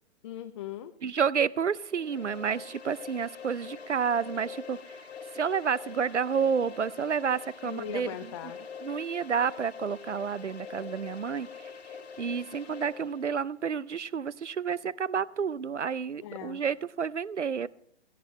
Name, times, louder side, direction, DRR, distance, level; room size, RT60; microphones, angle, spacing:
voice 1, 0.2-0.9 7.6-8.6 16.2-16.6, left 12 dB, 25° left, 8 dB, 0.5 m, -39 dB
voice 2, 1.0-4.8 5.3-8.1 8.8-11.5 12.2-17.7, right 6 dB, 85° right, 21 dB, 0.6 m, -30 dB
sound 1, 1.8-13.4, left 6 dB, 65° left, 2.1 m, -44 dB
17.0 x 15.5 x 3.2 m, 0.64 s
figure-of-eight pair, 115°, 34 cm